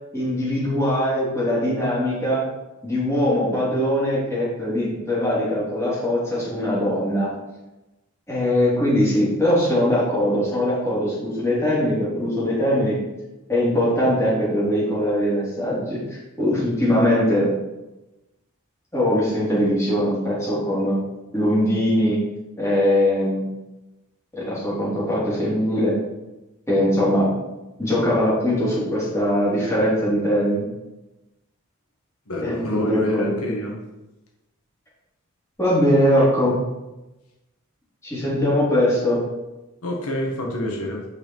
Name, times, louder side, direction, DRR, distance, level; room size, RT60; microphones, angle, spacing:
voice 1, 0.1-2.4 2.8-7.3 8.3-13.0 13.5-17.5 18.9-20.9 21.3-22.2 22.6-23.4 24.3-25.9 26.7-27.3 27.8-30.6 32.4-33.3 35.6-36.5 38.0-39.2, equal, 15° left, -8 dB, 3.4 m, -21 dB
voice 2, 32.3-33.8 36.2-36.3 39.8-41.1, left 1 dB, 80° left, 0 dB, 1.7 m, -27 dB
8.9 x 5.6 x 4.6 m, 1.0 s
head